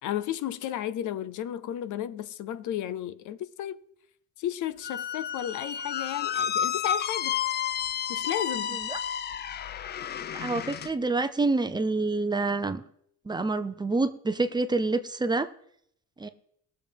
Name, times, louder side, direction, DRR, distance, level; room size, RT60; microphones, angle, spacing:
voice 1, 0.0-3.8 4.4-7.4 8.1-8.8, left 11 dB, 80° left, 0.7 m, -33 dB
Squeak, 4.8-10.9, left 8 dB, 35° left, 0.4 m, -31 dB
voice 2, 10.3-12.8 13.3-15.5 16.2-16.3, right 3 dB, 15° right, 0.6 m, -27 dB
21.0 x 7.0 x 3.5 m
cardioid pair, 140°, 30 cm